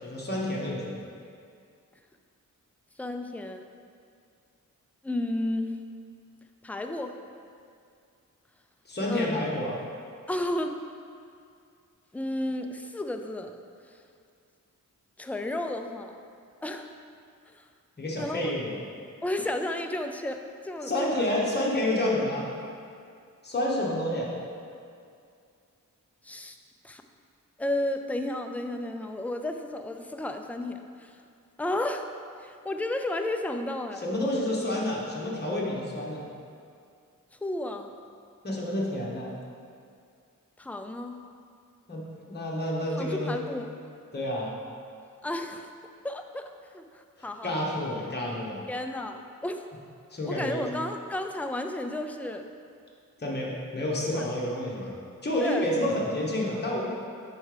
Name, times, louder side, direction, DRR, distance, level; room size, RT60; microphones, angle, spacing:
voice 1, 0.0-1.0 8.9-9.8 18.0-18.8 20.8-22.5 23.4-24.3 34.0-36.2 38.4-39.3 41.9-43.4 44.1-44.5 47.2-48.6 50.1-50.7 53.2-54.9 55.2-56.9, left 1 dB, 30° left, -4 dB, 1.2 m, -29 dB
voice 2, 3.0-3.7 5.0-5.8 6.6-7.2 9.1-9.4 10.3-10.8 12.1-13.6 13.9-14.0 15.2-16.2 16.6-16.9 17.5-17.6 18.2-18.5 19.2-21.3 26.2-26.6 26.8-27.0 27.6-31.2 31.6-32.1 32.4-34.0 37.3-37.9 40.6-41.2 42.8-43.7 45.2-45.7 46.0-47.7 48.7-49.6 50.3-52.5 54.1-54.3 55.4-55.6, left 1 dB, 5° left, 5 dB, 0.3 m, -33 dB
5.4 x 4.6 x 4.9 m, 2.4 s
wide cardioid pair, 90°, 33 cm